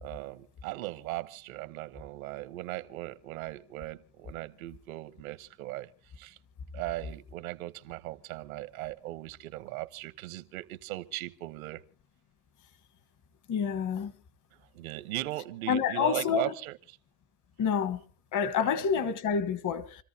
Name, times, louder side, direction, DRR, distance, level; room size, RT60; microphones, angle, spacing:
voice 1, 0.0-5.9 6.2-6.4 6.7-11.8 14.7-17.0 18.6-19.1, right 17 dB, 85° right, 1.1 m, -38 dB
voice 2, 13.5-14.1 15.7-16.5 17.6-18.0 18.3-20.0, left 7 dB, 45° left, 1.4 m, -28 dB
28.5 x 14.0 x 2.8 m
supercardioid pair, 95°, 41 cm